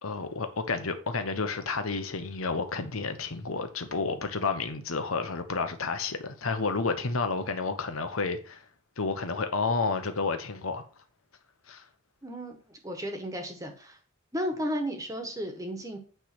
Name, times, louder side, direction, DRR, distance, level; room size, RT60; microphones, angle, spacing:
voice 1, 0.0-8.6 9.0-10.8 11.7-11.8, left 4 dB, 85° left, 1.0 m, -30 dB
voice 2, 12.2-14.0 14.3-16.0, equal, 15° right, 1.3 m, -34 dB
9.1 x 3.4 x 6.0 m
head